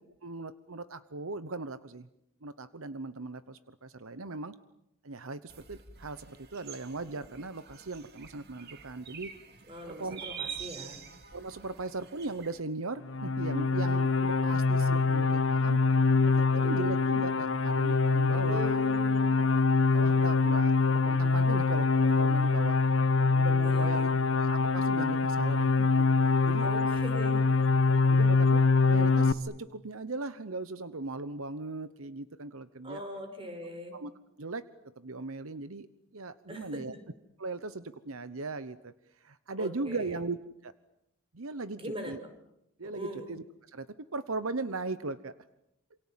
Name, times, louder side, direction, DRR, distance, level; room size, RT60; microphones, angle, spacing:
voice 1, 0.2-2.1 2.4-4.5 5.0-9.3 9.9-10.2 11.3-15.8 16.2-18.9 19.9-22.8 23.3-24.1 24.3-25.7 26.2-26.7 28.1-33.0 33.9-34.1 34.4-34.6 35.0-35.9 36.1-36.9 37.4-38.9 39.2-40.4 40.6-40.7 41.3-41.8 42.1-42.2 42.8-43.9 44.1-45.3, right 3 dB, 70° right, 13 dB, 1.0 m, -38 dB
A short bird sounds clip, 5.5-12.6, right 7 dB, 45° right, 2.3 m, -46 dB
voice 2, 9.7-11.0 16.5-16.7 18.3-19.4 23.6-24.1 26.6-27.4 32.8-34.0 36.5-36.8 39.6-40.2 41.7-42.2 42.8-43.3, equal, 25° right, 6 dB, 5.5 m, -41 dB
sound 1, 13.0-29.3, left 4 dB, 60° left, 1.0 m, -25 dB
28.0 x 27.5 x 7.5 m, 0.80 s
head